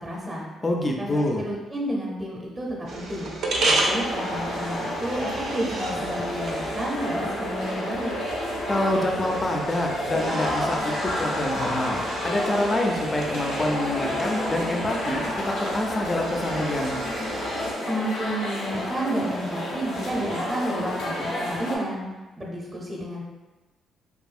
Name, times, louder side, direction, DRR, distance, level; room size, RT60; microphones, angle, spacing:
voice 1, 0.0-0.5 1.0-3.3 3.7-8.2 17.8-22.0 22.4-23.2, right 1 dB, 20° right, -3 dB, 0.6 m, -31 dB
voice 2, 0.6-1.4 8.7-17.0, left 1 dB, 25° left, 1 dB, 0.4 m, -26 dB
sound 1, 2.9-17.7, right 2 dB, 70° right, 0.5 m, -33 dB
sound 2, 3.5-21.8, left 1 dB, 85° left, 0.7 m, -30 dB
2.6 x 2.6 x 2.4 m, 1.2 s
cardioid pair, 90°, 0 cm